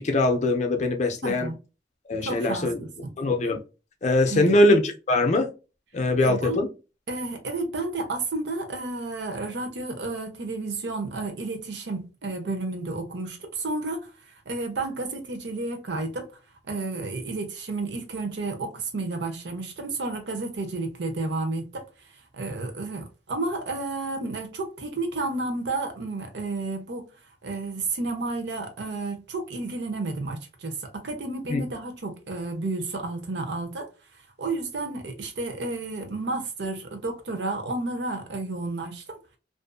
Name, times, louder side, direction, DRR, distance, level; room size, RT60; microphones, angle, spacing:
voice 1, 0.0-1.5 2.1-2.8 3.2-3.6 4.0-5.5 5.9-6.7 31.5-31.6, left 2 dB, 40° left, 0.5 m, -22 dB
voice 2, 1.2-1.6 2.2-3.1 4.3-4.6 6.2-6.6 7.1-16.3 16.7-21.8 22.3-27.1 27.4-33.9 34.4-39.2, right 3 dB, 75° right, 0.7 m, -31 dB
2.5 x 2.5 x 2.3 m
head